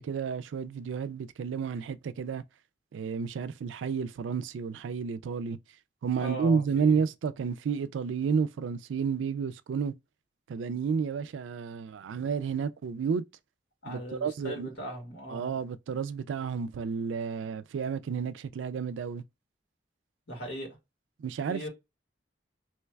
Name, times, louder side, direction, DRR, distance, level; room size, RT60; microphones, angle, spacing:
voice 1, 0.0-2.4 2.9-5.6 6.0-9.9 10.5-13.2 13.9-14.7 15.3-19.2 21.2-21.7, right 6 dB, 90° right, 0.3 m, -31 dB
voice 2, 6.2-7.0 13.8-15.5 20.3-20.7 21.5-21.7, right 1 dB, 80° left, 1.7 m, -39 dB
3.0 x 2.3 x 3.2 m
head